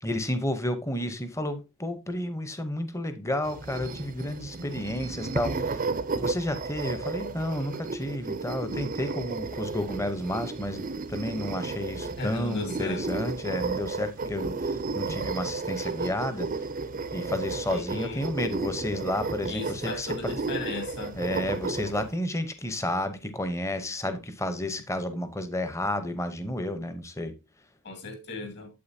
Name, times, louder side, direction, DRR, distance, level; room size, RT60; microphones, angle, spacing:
voice 1, 0.0-5.8 6.1-16.5 17.1-20.3 21.2-27.3, left 1 dB, 15° left, 0.8 m, -31 dB
sound 1, 3.4-22.1, right 3 dB, 40° right, 0.5 m, -33 dB
voice 2, 12.2-13.1 17.7-18.2 19.5-21.2 27.8-28.7, left 3 dB, 50° left, 2.2 m, -36 dB
8.5 x 7.7 x 2.7 m
head